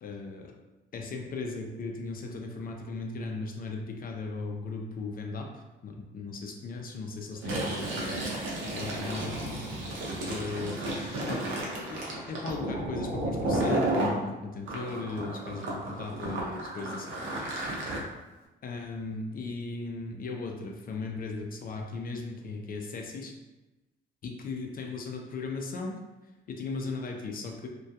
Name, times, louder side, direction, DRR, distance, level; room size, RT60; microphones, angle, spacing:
voice 1, 0.0-0.5 0.9-5.5 5.8-9.6 10.2-10.8 11.3-11.4 11.9-17.4 18.6-23.3 24.2-26.0 26.5-27.7, left 3 dB, 45° left, 2 dB, 0.4 m, -37 dB
Fill (with liquid), 7.3-14.1 14.7-18.0, right 1 dB, 75° right, 0.6 m, -32 dB
voice 2, 10.0-11.3 16.7-18.1, right 2 dB, 30° right, -1 dB, 0.6 m, -48 dB
2.2 x 2.2 x 2.7 m, 1.1 s
cardioid pair, 90°, 20 cm